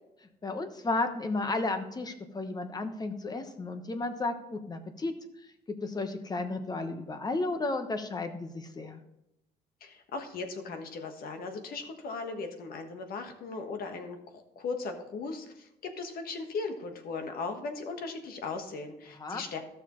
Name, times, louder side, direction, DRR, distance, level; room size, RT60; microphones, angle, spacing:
voice 1, 0.4-5.2 5.7-9.0 19.1-19.4, left 2 dB, 25° left, 7 dB, 1.1 m, -33 dB
voice 2, 9.8-19.6, left 4 dB, 60° left, 6 dB, 1.4 m, -38 dB
14.0 x 6.5 x 3.1 m, 0.87 s
cardioid pair, 110°, 17 cm